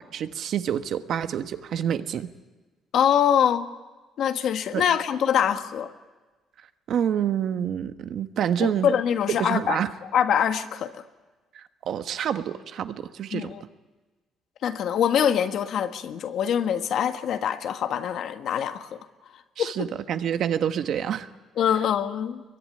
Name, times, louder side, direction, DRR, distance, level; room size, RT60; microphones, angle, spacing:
voice 1, 0.1-2.3 4.7-4.8 6.9-8.9 9.4-9.9 11.5-13.5 19.6-21.3, right 9 dB, 55° right, 9 dB, 1.2 m, -27 dB
voice 2, 2.9-3.7 4.2-5.9 8.6-9.8 10.1-10.9 13.3-13.6 14.6-19.0 19.6-19.9 21.6-22.4, left 9 dB, 55° left, 8 dB, 1.5 m, -24 dB
25.5 x 22.5 x 9.9 m, 1.2 s
cardioid pair, 160°, 0 cm